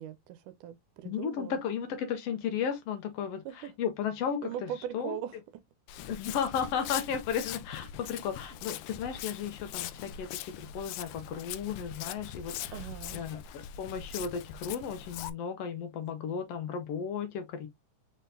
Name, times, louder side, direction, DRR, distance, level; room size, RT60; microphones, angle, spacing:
voice 1, 0.0-1.6 3.5-3.7 4.4-5.4 12.7-13.2, right 10 dB, 85° right, 2.1 m, -40 dB
voice 2, 1.0-5.2 6.1-10.3 10.6-17.7, left 7 dB, 70° left, 1.7 m, -34 dB
Walk footsteps, 5.9-15.3, left 10 dB, 85° left, 1.5 m, -41 dB
5.3 x 3.7 x 2.7 m
omnidirectional pair, 3.5 m